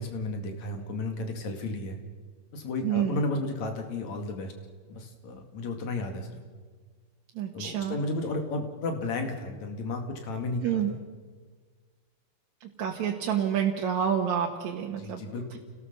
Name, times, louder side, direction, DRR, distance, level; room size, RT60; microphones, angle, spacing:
voice 1, 0.0-2.0 2.5-4.5 4.9-6.4 7.5-11.0 15.0-15.6, left 2 dB, 70° left, 5 dB, 3.4 m, -33 dB
voice 2, 2.8-3.2 7.4-8.0 10.6-10.9 12.6-15.2, right 9 dB, 70° right, 0 dB, 2.7 m, -28 dB
29.0 x 17.5 x 6.8 m, 1.5 s
omnidirectional pair, 3.4 m